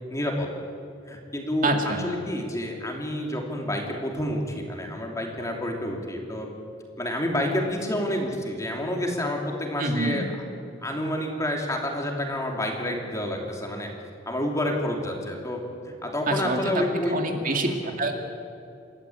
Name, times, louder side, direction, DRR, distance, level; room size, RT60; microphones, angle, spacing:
voice 1, 0.1-0.5 1.1-6.5 7.0-10.3 10.8-13.9 14.3-17.9, left 1 dB, 15° left, 1 dB, 3.1 m, -29 dB
voice 2, 1.6-2.1 9.8-10.2 16.3-16.8 17.1-18.1, right 2 dB, 45° right, 3 dB, 2.3 m, -26 dB
28.5 x 13.5 x 8.7 m, 2.7 s
head